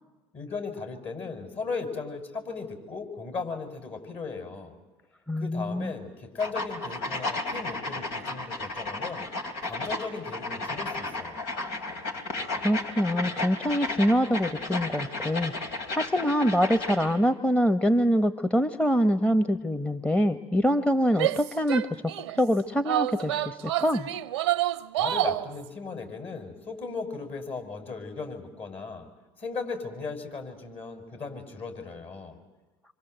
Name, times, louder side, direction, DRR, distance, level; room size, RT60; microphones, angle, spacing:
voice 1, 0.3-4.7 5.4-9.3 9.6-11.4 25.0-29.1 29.4-32.4, left 4 dB, 45° left, 6 dB, 6.4 m, -36 dB
voice 2, 5.3-5.9 12.6-21.8 22.4-24.1, equal, 10° left, 11 dB, 1.1 m, -25 dB
sound 1, 6.4-17.1, left 2 dB, 80° left, 3.1 m, -33 dB
Female speech woman speaking / Yell, 21.1-22.4 22.9-25.5, right 13 dB, 90° right, 0.8 m, -28 dB
27.0 x 25.0 x 8.1 m, 1.2 s
hypercardioid pair, 70°, 13 cm